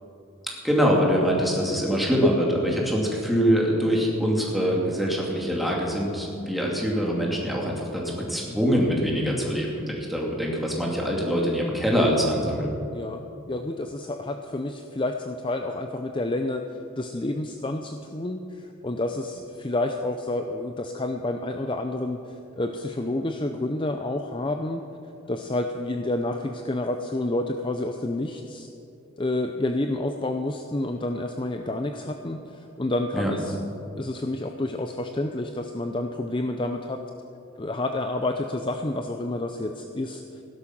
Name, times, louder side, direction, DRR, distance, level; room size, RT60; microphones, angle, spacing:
voice 1, 0.6-12.7 33.1-33.3, equal, ahead, -3 dB, 2.4 m, -24 dB
voice 2, 12.9-24.8 25.3-28.7 29.2-33.5 34.0-37.0 37.6-40.4, left 2 dB, 25° left, 5 dB, 0.6 m, -29 dB
16.5 x 11.5 x 6.0 m, 2.7 s
head